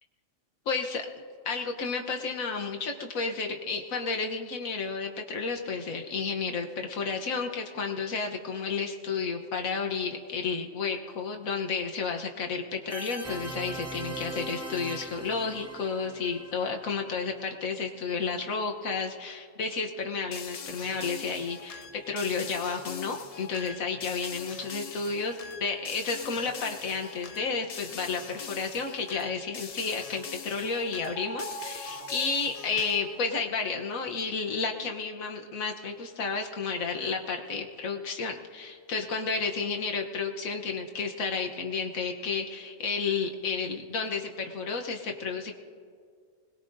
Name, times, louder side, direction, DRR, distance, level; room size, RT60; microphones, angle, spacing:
voice 1, 0.7-1.1 1.4-45.5, left 4 dB, 90° left, 3 dB, 1.4 m, -32 dB
sound 1, 12.9-17.5, right 2 dB, 15° right, 0.6 m, -40 dB
sound 2, 20.3-33.2, left 6 dB, 60° left, 0.4 m, -43 dB
sound 3, 31.2-33.6, right 2 dB, 70° right, 6.2 m, -43 dB
25.5 x 20.0 x 2.6 m, 2.1 s
omnidirectional pair, 1.4 m